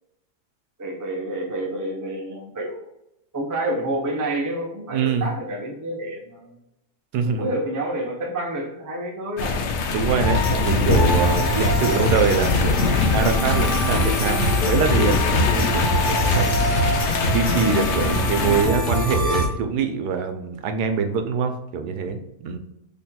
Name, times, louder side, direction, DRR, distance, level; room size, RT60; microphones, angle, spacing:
voice 1, 0.8-2.8 3.3-6.6 7.4-9.6 11.4-11.7 16.8-17.1, right 1 dB, 20° right, -1 dB, 0.4 m, -29 dB
voice 2, 4.9-5.3 7.1-7.5 9.9-17.0 17.3-22.6, right 6 dB, 85° right, 6 dB, 1.2 m, -24 dB
sound 1, 9.4-18.6, left 4 dB, 75° left, 0.6 m, -23 dB
sound 2, 10.2-19.5, left 1 dB, 40° left, 0.8 m, -23 dB
4.2 x 3.4 x 2.2 m, 0.85 s
omnidirectional pair, 1.7 m